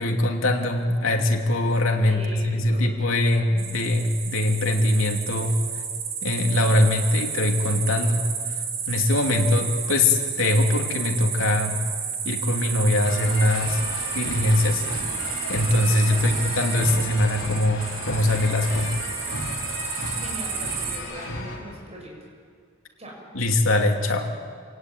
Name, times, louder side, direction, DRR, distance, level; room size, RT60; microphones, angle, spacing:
voice 1, 0.0-5.5 6.2-8.2 8.9-11.8 12.2-13.8 14.1-14.8 15.5-18.9 23.3-24.3, left 1 dB, 90° left, 2 dB, 2.8 m, -22 dB
voice 2, 2.1-3.0 16.0-16.4 20.1-22.1 23.0-23.2, right 1 dB, 35° right, -1 dB, 6.4 m, -40 dB
sound 1, 3.6-21.0, right 6 dB, 80° right, 4.4 m, -31 dB
sound 2, 13.0-21.6, left 2 dB, 65° left, 6.3 m, -34 dB
27.5 x 17.5 x 9.3 m, 2.1 s
head